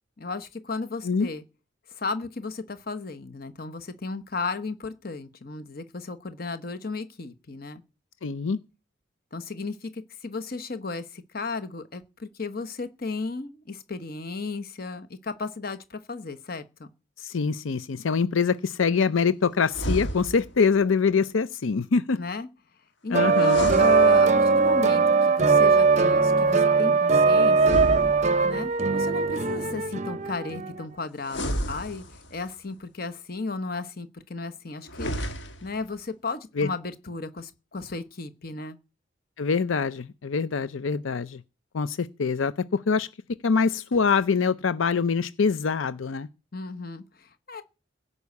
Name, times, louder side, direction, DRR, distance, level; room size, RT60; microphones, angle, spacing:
voice 1, 0.2-1.4 1.9-7.8 9.3-16.9 22.2-22.5 23.0-27.9 28.4-32.0 32.3-35.1 35.6-38.8 46.5-47.6, left 3 dB, 50° left, 1.1 m, -34 dB
voice 2, 8.2-8.6 17.2-22.2 23.1-23.7 36.6-36.7 39.4-41.4 41.7-43.1 43.4-46.3, left 5 dB, 85° left, 0.6 m, -24 dB
sound 1, 19.7-20.6 23.3-24.7 27.5-28.7 31.2-32.5 34.8-35.8, equal, 65° left, 1.7 m, -32 dB
sound 2, 23.1-30.7, right 4 dB, 35° right, 0.6 m, -20 dB
16.5 x 5.5 x 8.3 m
head